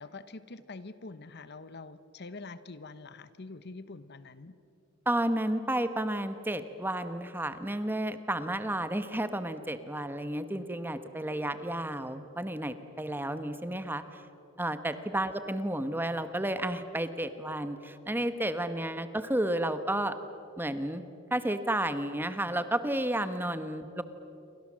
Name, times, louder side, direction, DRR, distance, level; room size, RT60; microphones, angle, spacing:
voice 1, 0.0-4.6 23.4-23.5, left 3 dB, 55° left, 13 dB, 1.0 m, -45 dB
voice 2, 5.1-14.2 14.6-20.2 20.6-21.0 21.3-24.0, right 1 dB, 10° right, 10 dB, 1.2 m, -32 dB
29.0 x 24.5 x 7.5 m, 2.7 s
head